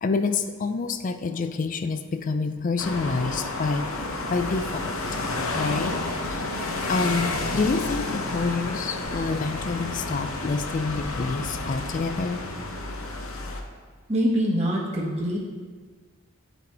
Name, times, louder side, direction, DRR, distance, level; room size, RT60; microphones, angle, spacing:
voice 1, 0.0-4.0 4.3-4.9 5.6-6.0 6.3-12.4, left 4 dB, 35° left, 9 dB, 0.4 m, -27 dB
sound 1, 2.8-13.6, left 2 dB, 70° left, 0.8 m, -30 dB
voice 2, 14.1-15.4, equal, 30° right, -4 dB, 1.2 m, -24 dB
10.0 x 4.1 x 4.2 m, 1.5 s
head